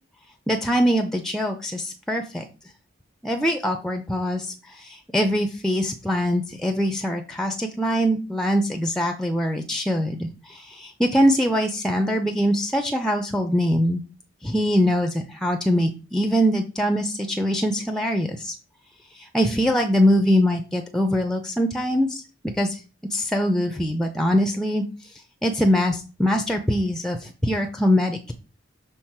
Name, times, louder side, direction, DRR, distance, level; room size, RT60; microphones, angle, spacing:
voice 1, 0.5-2.5 3.2-14.0 14.4-18.5 19.1-22.2 22.6-22.8 23.1-24.8 25.4-28.3, equal, ahead, 5 dB, 0.6 m, -23 dB
6.4 x 3.5 x 5.8 m, 0.33 s
head